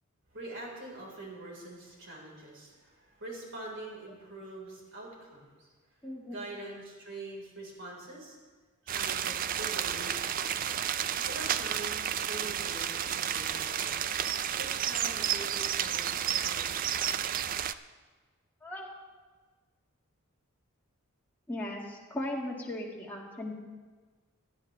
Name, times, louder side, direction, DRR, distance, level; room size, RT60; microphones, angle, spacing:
voice 1, 0.3-5.7 6.3-8.4 8.8-10.8 11.2-14.0 14.6-17.0, right 2 dB, 55° right, -2 dB, 4.2 m, -44 dB
voice 2, 6.0-6.4 18.6-18.9 21.5-23.5, left 1 dB, 10° left, -4 dB, 1.9 m, -37 dB
sound 1, 8.9-17.7, right 9 dB, 40° right, 0.3 m, -31 dB
18.5 x 12.5 x 3.3 m, 1.4 s
head